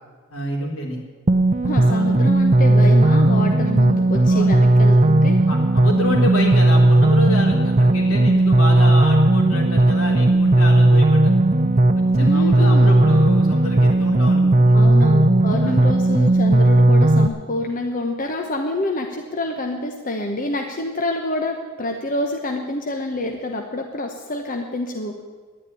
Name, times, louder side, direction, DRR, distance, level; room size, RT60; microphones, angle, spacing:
voice 1, 0.3-1.0 1.9-2.1 4.3-4.5 5.5-11.4 12.0-14.8 15.6-15.8, left 1 dB, 80° left, -1 dB, 3.8 m, -28 dB
sound 1, 1.3-17.3, right 1 dB, 35° right, 0.6 m, -15 dB
voice 2, 1.6-5.4 12.2-13.2 14.7-25.2, left 1 dB, 40° left, 3 dB, 1.1 m, -27 dB
11.0 x 9.7 x 10.0 m, 1.5 s
head